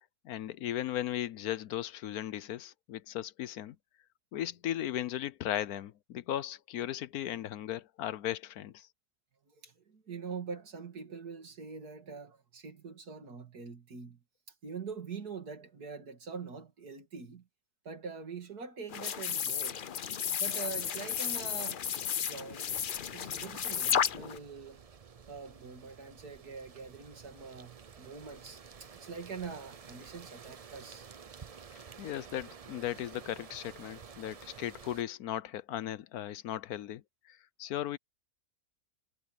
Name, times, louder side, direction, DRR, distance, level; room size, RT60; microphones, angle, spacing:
voice 1, 0.2-3.8 4.3-8.9 32.0-37.0 37.3-38.0, left 12 dB, 75° left, 1.2 m, -37 dB
voice 2, 9.5-14.2 14.6-17.5 17.8-19.8 20.4-21.8 22.1-22.7 23.1-24.8 25.3-31.1, right 5 dB, 80° right, 3.0 m, -44 dB
sound 1, 18.9-24.4, left 8 dB, 55° left, 0.6 m, -33 dB
sound 2, 22.7-35.0, right 6 dB, 50° right, 0.4 m, -52 dB
omnidirectional pair, 1.6 m